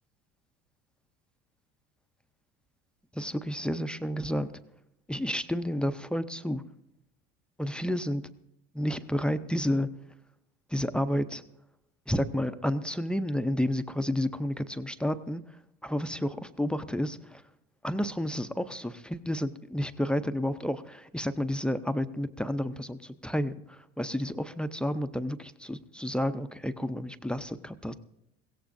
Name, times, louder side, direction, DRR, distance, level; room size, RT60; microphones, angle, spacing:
voice 1, 3.1-4.5 5.1-6.6 7.6-8.3 8.7-9.9 10.7-11.4 12.1-15.4 15.8-17.4 17.8-27.9, equal, 5° left, 11 dB, 0.5 m, -31 dB
21.5 x 16.5 x 2.6 m, 0.81 s
supercardioid pair, 110°, 29 cm